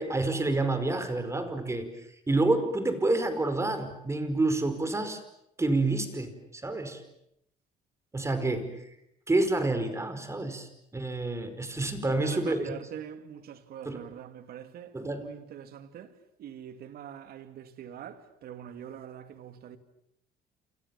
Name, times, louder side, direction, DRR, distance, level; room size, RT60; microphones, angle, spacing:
voice 1, 0.0-5.2 5.6-7.0 8.1-8.9 9.3-12.7 13.8-14.0 14.9-15.3, right 2 dB, 15° right, 4.9 m, -28 dB
voice 2, 12.0-19.8, right 9 dB, 65° right, 2.6 m, -44 dB
29.0 x 28.0 x 7.2 m
cardioid pair, 110°, 17 cm